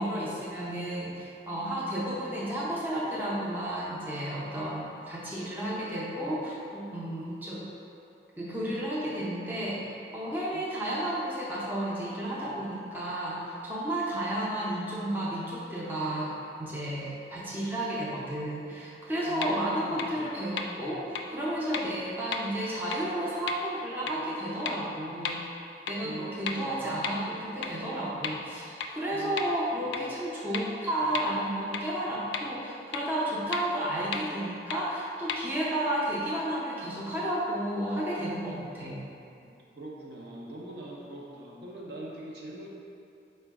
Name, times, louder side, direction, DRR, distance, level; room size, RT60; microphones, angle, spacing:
voice 1, 0.0-7.6 8.4-16.3 16.6-25.4 25.9-39.0, right 1 dB, 10° right, -7 dB, 0.5 m, -32 dB
voice 2, 19.3-20.1 26.0-26.8 29.1-29.4 29.8-30.0 38.8-42.7, right 1 dB, 65° right, -3 dB, 0.6 m, -43 dB
sound 1, 19.4-19.5 20.0-20.1 20.6-20.7 21.1-21.2 21.7-21.8 22.3-22.4 22.9-23.0 23.5-23.6 24.1-24.2 24.7-24.8 25.2-25.3 25.9-26.0 26.5-26.6 27.0-27.1 27.6-27.7 28.2-28.3 28.8-28.9 29.4-29.5 29.9-30.0 30.5-30.6 31.1-31.2 31.7-31.8 32.3-32.4 32.9-33.0 33.5-33.6 34.1-34.2 34.7-34.8 35.3-35.4, left 6 dB, 75° left, 0.3 m, -32 dB
4.9 x 2.2 x 4.5 m, 2.6 s
head